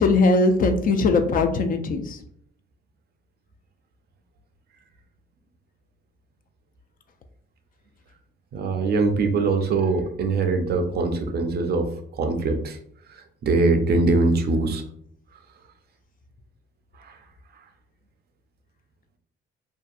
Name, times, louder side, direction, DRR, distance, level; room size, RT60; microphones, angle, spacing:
voice 1, 0.0-2.2, left 3 dB, 45° left, 7 dB, 0.4 m, -20 dB
voice 2, 8.5-11.9 12.2-12.8 13.1-14.8 17.0-17.2, right 3 dB, 55° right, 6 dB, 0.5 m, -22 dB
2.7 x 2.2 x 2.4 m, 0.66 s
cardioid pair, 90°, 20 cm